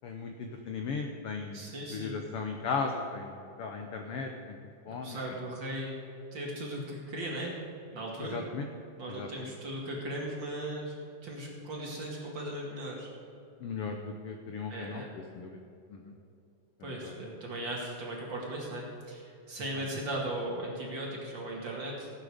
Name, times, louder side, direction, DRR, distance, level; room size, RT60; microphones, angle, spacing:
voice 1, 0.0-4.6 4.9-5.2 8.2-8.7 9.1-9.5 13.6-15.0 15.3-15.6 15.9-16.1 16.8-17.2 19.7-19.8, left 4 dB, 75° left, 3 dB, 1.3 m, -37 dB
voice 2, 1.5-2.2 4.8-6.0 6.3-7.5 7.9-8.4 9.0-11.0 11.2-13.1 14.7-15.1 16.8-22.1, right 1 dB, 40° right, -3 dB, 2.4 m, -37 dB
16.5 x 9.0 x 5.0 m, 2.6 s
omnidirectional pair, 3.6 m